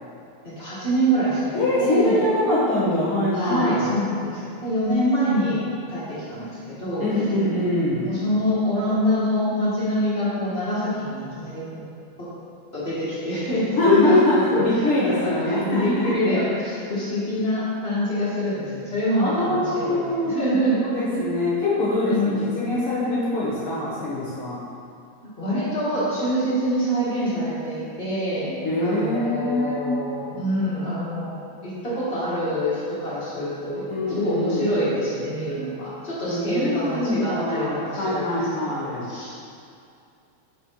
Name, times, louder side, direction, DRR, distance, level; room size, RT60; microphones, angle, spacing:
voice 1, 0.4-2.2 3.3-5.6 5.9-7.0 7.8-11.8 12.7-20.8 21.1-21.2 22.1-22.4 25.4-28.5 28.8-38.4 38.8-39.3, equal, 35° left, -11 dB, 1.0 m, -25 dB
voice 2, 1.5-3.9 7.0-8.1 13.8-16.1 19.2-20.3 20.9-24.6 28.5-30.0 33.9-34.7 36.2-39.0, left 1 dB, 60° left, -8 dB, 1.6 m, -23 dB
5.5 x 4.2 x 4.6 m, 2.5 s
omnidirectional pair, 3.3 m